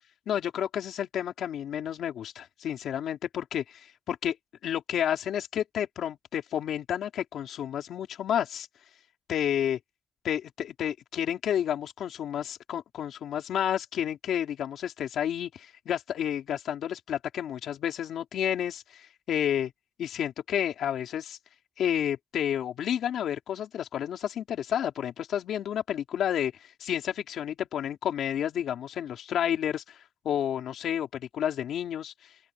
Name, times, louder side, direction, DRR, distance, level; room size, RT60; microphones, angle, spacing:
voice 1, 0.3-4.4 4.6-8.7 9.3-9.8 10.2-19.7 20.0-21.4 21.8-26.5 26.8-32.1, left 10 dB, 90° left, 3.7 m, -30 dB
open air
cardioid pair, 65°, 0 cm